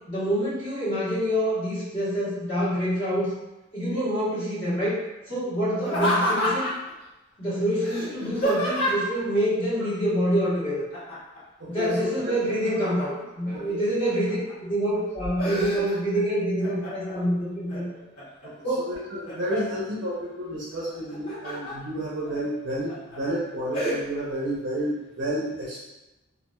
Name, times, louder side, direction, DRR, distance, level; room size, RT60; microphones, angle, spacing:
voice 1, 0.1-3.3 3.7-5.0 5.3-6.7 7.4-10.8 11.7-17.8 18.6-18.9, equal, 30° left, -11 dB, 1.2 m, -26 dB
Laughter, 5.8-6.9 7.8-9.2 10.9-11.4 11.7-13.3 13.9-14.5 14.9-16.2 16.6-17.2 17.7-18.5 18.9-19.8 20.9-21.7 22.3-22.4 22.9-23.2 23.7-24.0, equal, 50° left, 1.3 m, -29 dB
voice 2, 11.6-12.3 13.5-13.8 18.8-25.8, equal, 60° right, -7 dB, 0.6 m, -31 dB
3.0 x 2.4 x 2.2 m, 1.0 s
head